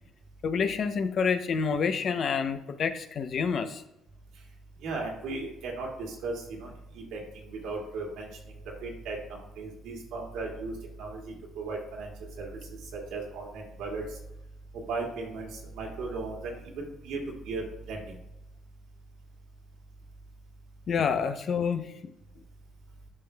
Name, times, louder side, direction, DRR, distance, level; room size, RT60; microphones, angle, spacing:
voice 1, 0.4-3.8 20.9-21.9, left 6 dB, 55° left, 9 dB, 0.7 m, -28 dB
voice 2, 4.8-10.7 11.0-12.1 12.4-12.6 12.9-14.2 14.7-18.1, right 3 dB, 85° right, -1 dB, 2.1 m, -37 dB
11.0 x 5.5 x 2.3 m, 0.85 s
cardioid pair, 95°, 0 cm